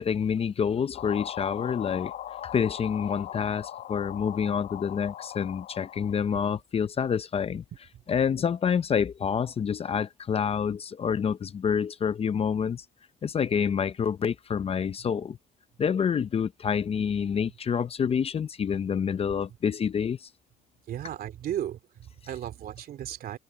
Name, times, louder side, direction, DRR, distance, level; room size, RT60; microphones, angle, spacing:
voice 1, 0.0-2.1 2.4-7.6 8.1-12.8 13.2-15.4 15.8-20.3, left 7 dB, 35° left, 0.7 m, -27 dB
sound 1, 0.9-6.4, left 12 dB, 60° left, 1.2 m, -40 dB
voice 2, 20.9-23.4, right 11 dB, 55° right, 3.1 m, -35 dB
cardioid pair, 100°, 18 cm